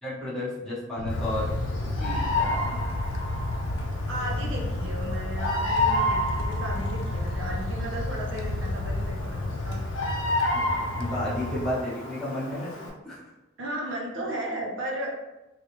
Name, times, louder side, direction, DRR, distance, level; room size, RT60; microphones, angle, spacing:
voice 1, 0.0-2.8 10.5-13.3, left 1 dB, 5° left, -8 dB, 0.9 m, -33 dB
sound 1, 1.0-11.7, left 1 dB, 65° left, 0.3 m, -31 dB
Bird vocalization bird call bird song, 1.1-12.9, left 1 dB, 85° left, 0.7 m, -31 dB
voice 2, 4.1-9.8 13.6-15.2, right 1 dB, 70° right, -2 dB, 0.8 m, -35 dB
3.3 x 2.3 x 3.0 m, 0.99 s
head